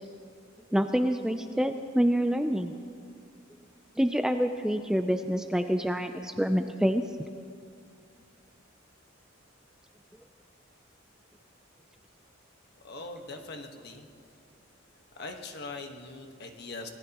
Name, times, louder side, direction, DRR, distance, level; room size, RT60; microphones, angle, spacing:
voice 1, 0.7-2.7 4.0-7.0, equal, 5° right, 7 dB, 0.4 m, -27 dB
voice 2, 12.8-14.1 15.1-16.9, left 3 dB, 55° left, 4 dB, 1.4 m, -41 dB
25.0 x 19.0 x 3.0 m, 2.3 s
head